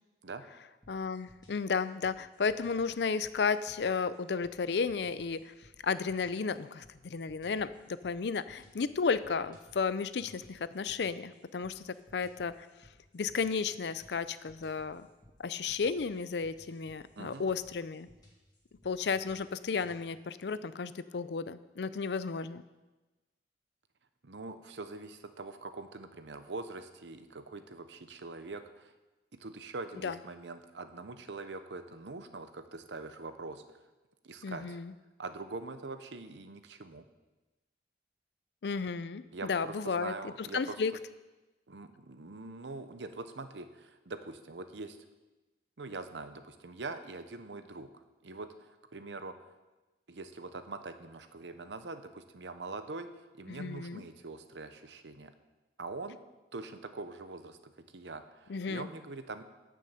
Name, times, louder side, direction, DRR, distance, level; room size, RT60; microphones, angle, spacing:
sound 1, 0.8-20.0, left 1 dB, 25° left, 2.1 m, -61 dB
voice 1, 0.9-5.5 5.8-12.7 13.1-15.1 15.4-18.1 18.8-22.6 30.0-30.2 34.4-34.9 38.6-40.9 53.5-54.0 58.5-58.9, left 5 dB, 70° left, 15 dB, 0.5 m, -33 dB
voice 2, 24.2-28.9 29.4-33.6 34.2-34.8 35.2-37.0 39.3-40.8 41.7-45.0 45.8-47.9 48.2-49.3 50.1-53.1 53.3-55.3 55.8-56.2 56.5-57.6 57.9-59.4, right 3 dB, 85° right, 9 dB, 0.9 m, -43 dB
14.0 x 6.4 x 5.7 m, 1.1 s
head